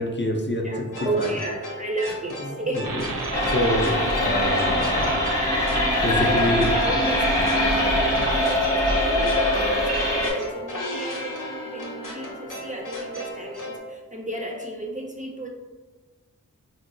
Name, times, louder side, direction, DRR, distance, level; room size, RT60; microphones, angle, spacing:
voice 1, 0.0-0.6 1.2-1.3 2.8-3.0 3.5-5.1 6.0-6.7, left 1 dB, 35° left, 0 dB, 0.5 m, -26 dB
voice 2, 0.6-2.9 6.1-8.3 8.8-15.5, right 2 dB, 25° right, 0 dB, 0.4 m, -33 dB
sound 1, 0.9-13.8, left 1 dB, 70° left, 0.7 m, -35 dB
sound 2, 2.8-8.4, right 2 dB, 80° right, 0.5 m, -31 dB
sound 3, 3.3-10.3, left 1 dB, 10° left, 0.8 m, -22 dB
3.8 x 2.2 x 2.5 m, 1.3 s
wide cardioid pair, 50°, 33 cm